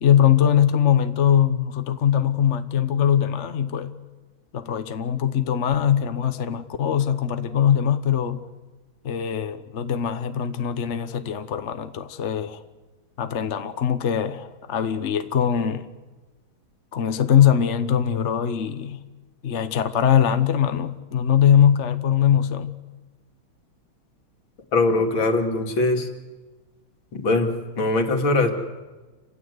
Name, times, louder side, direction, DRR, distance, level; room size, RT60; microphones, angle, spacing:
voice 1, 0.0-3.9 4.5-8.5 9.0-12.6 13.2-15.9 16.9-19.0 19.4-22.7, left 9 dB, 45° left, 1.1 m, -21 dB
voice 2, 24.7-26.1 27.1-28.5, left 2 dB, 70° left, 3.1 m, -21 dB
28.5 x 16.0 x 9.7 m
omnidirectional pair, 2.3 m